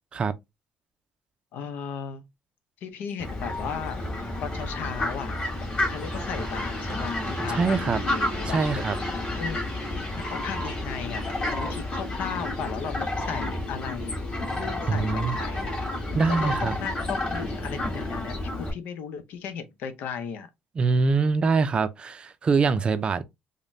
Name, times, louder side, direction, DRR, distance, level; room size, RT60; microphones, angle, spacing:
voice 1, 1.5-2.3 2.8-4.0 4.4-5.4 5.8-9.6 10.1-14.2 14.5-15.8 16.3-20.5, left 7 dB, 70° left, 0.7 m, -36 dB
Fowl, 3.2-18.7, left 1 dB, 30° left, 1.5 m, -30 dB
voice 2, 7.5-8.0 8.5-8.9 14.9-15.4 16.1-16.7 20.8-23.2, right 4 dB, 30° right, 0.4 m, -24 dB
5.1 x 2.2 x 2.6 m
cardioid pair, 125°, 3 cm